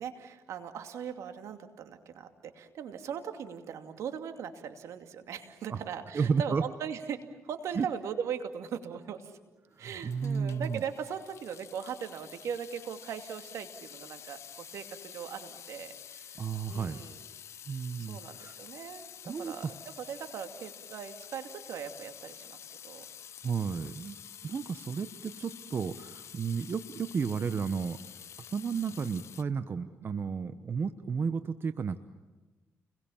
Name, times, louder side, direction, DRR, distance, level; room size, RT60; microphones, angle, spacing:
voice 1, 0.0-9.4 9.8-17.2 18.0-19.7 20.0-23.0 23.7-23.9, right 7 dB, 80° right, 7 dB, 2.6 m, -39 dB
voice 2, 6.1-6.6 7.7-7.9 9.7-10.8 16.4-17.0 17.7-18.6 19.3-19.7 20.0-20.1 23.4-24.2 24.4-28.0 28.5-32.0, right 6 dB, 45° right, 10 dB, 1.1 m, -32 dB
Water tap faucet / Sink (filling or washing) / Drip, 9.8-29.4, left 9 dB, 65° left, 0.7 m, -49 dB
30.0 x 22.0 x 7.3 m, 1.2 s
cardioid pair, 85°, 5 cm